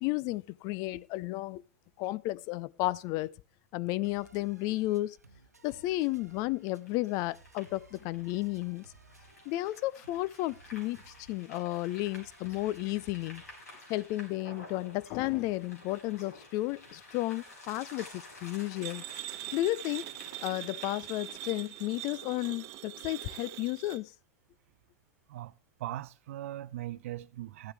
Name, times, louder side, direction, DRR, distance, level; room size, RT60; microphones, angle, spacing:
voice 1, 0.0-1.6 2.0-3.3 3.7-5.2 5.6-8.9 9.5-13.4 13.9-19.0 19.5-20.0 20.4-24.1, left 18 dB, 45° left, 0.5 m, -33 dB
sound 1, 4.0-13.6, right 3 dB, 85° right, 0.9 m, -59 dB
sound 2, 6.6-22.1, left 2 dB, 80° left, 5.1 m, -52 dB
sound 3, 18.8-24.0, right 15 dB, 45° right, 1.1 m, -42 dB
voice 2, 25.8-27.7, right 14 dB, 60° right, 0.6 m, -39 dB
14.0 x 11.0 x 3.4 m
figure-of-eight pair, 90°, 8 cm